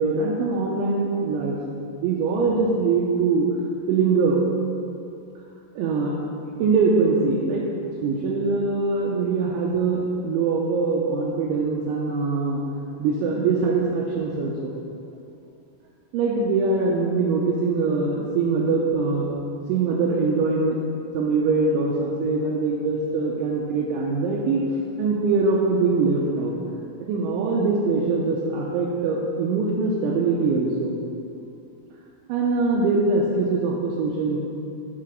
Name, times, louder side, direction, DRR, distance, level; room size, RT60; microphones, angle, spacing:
voice 1, 0.0-1.6 1.9-3.5 3.9-4.4 5.8-6.2 6.6-7.6 8.0-12.6 13.0-14.8 16.1-19.3 19.7-20.8 21.1-24.6 25.0-26.6 27.0-31.0 32.3-34.4, right 4 dB, 80° right, -3 dB, 2.9 m, -23 dB
7.6 x 6.7 x 6.3 m, 2.6 s
omnidirectional pair, 5.9 m